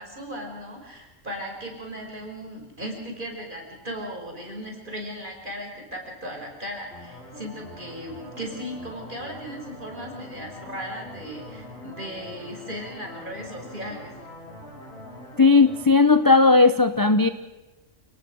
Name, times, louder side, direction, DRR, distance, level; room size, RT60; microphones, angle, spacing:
voice 1, 0.0-14.1, equal, 40° right, 2 dB, 5.7 m, -37 dB
sound 1, 6.9-15.8, left 1 dB, 50° left, 6.5 m, -43 dB
voice 2, 15.4-17.3, left 3 dB, 20° left, 11 dB, 0.6 m, -16 dB
28.5 x 19.0 x 6.3 m, 1.2 s
omnidirectional pair, 1.3 m